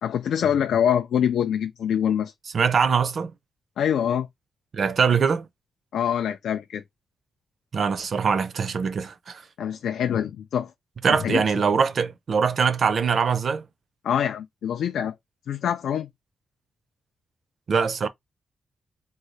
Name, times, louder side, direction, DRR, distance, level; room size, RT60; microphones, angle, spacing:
voice 1, 0.0-2.3 3.8-4.3 5.9-6.8 9.6-10.7 11.1-11.4 14.0-15.1 15.5-16.1, left 9 dB, 80° left, 0.3 m, -24 dB
voice 2, 2.5-3.3 4.7-5.5 7.7-9.4 11.0-13.7 17.7-18.1, right 6 dB, 45° right, 0.4 m, -22 dB
3.7 x 2.2 x 3.1 m
wide cardioid pair, 175°, 0 cm